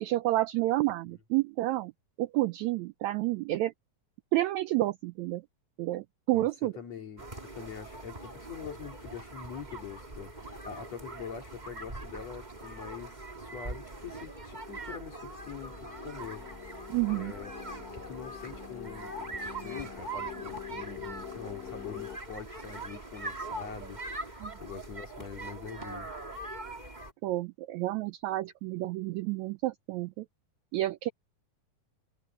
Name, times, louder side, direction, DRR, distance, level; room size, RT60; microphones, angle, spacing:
voice 1, 0.0-1.9 2.2-3.7 4.3-5.4 5.8-6.7 16.9-17.3 24.4-24.5 27.2-30.3 30.7-31.1, right 17 dB, 85° right, 1.6 m, -30 dB
voice 2, 6.3-16.5 17.1-17.5 17.9-26.1, left 7 dB, 55° left, 4.0 m, -44 dB
sound 1, 7.2-27.1, right 2 dB, 15° right, 1.7 m, -42 dB
sound 2, 14.4-22.2, left 11 dB, 80° left, 3.3 m, -45 dB
omnidirectional pair, 3.8 m